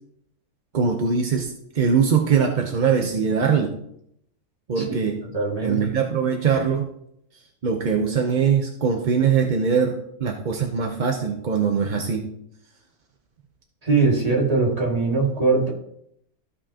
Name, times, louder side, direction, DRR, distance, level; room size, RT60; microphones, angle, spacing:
voice 1, 0.7-3.8 4.7-5.2 5.6-6.9 7.6-12.3, right 6 dB, 45° right, 3 dB, 0.6 m, -22 dB
voice 2, 4.8-5.9 13.8-15.7, right 3 dB, 25° right, -3 dB, 2.2 m, -22 dB
14.5 x 5.5 x 2.8 m, 0.74 s
omnidirectional pair, 1.6 m